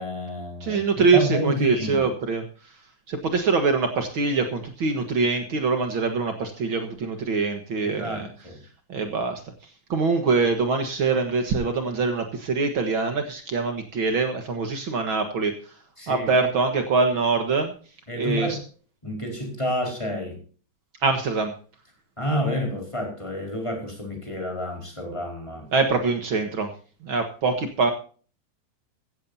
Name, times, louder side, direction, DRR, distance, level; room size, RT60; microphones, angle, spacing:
voice 1, 0.0-0.8 1.1-2.1 7.8-8.6 16.0-16.3 18.1-18.6 19.0-20.4 22.2-25.7, left 1 dB, 5° left, 1 dB, 4.3 m, -29 dB
voice 2, 0.6-2.5 3.1-8.3 8.9-9.4 9.9-15.6 16.1-17.7 18.2-18.6 21.0-21.5 25.7-26.7 27.0-27.9, right 4 dB, 85° right, 6 dB, 1.1 m, -24 dB
16.0 x 15.5 x 2.7 m, 0.40 s
omnidirectional pair, 4.7 m